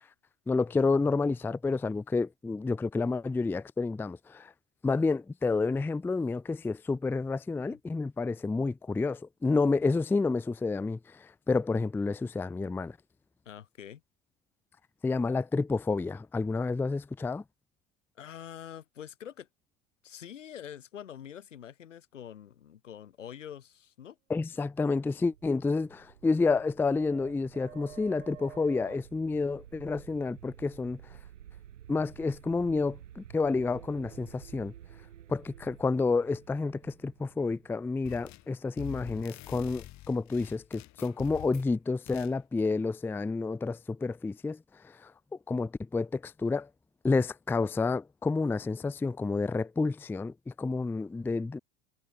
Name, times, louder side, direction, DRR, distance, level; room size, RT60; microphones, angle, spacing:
voice 1, 0.5-4.5 4.8-13.0 15.0-17.4 24.3-31.0 31.9-34.7 35.3-45.1 45.5-46.7 47.0-51.6, left 3 dB, 5° left, 0.4 m, -29 dB
voice 2, 13.5-14.0 18.2-19.5 20.0-24.2, left 9 dB, 80° left, 1.8 m, -45 dB
sound 1, 25.2-38.8, right 10 dB, 85° right, 0.9 m, -51 dB
sound 2, 38.0-38.5 38.8-41.7 42.1-42.3, left 16 dB, 50° left, 2.0 m, -46 dB
figure-of-eight pair, 70°, 37 cm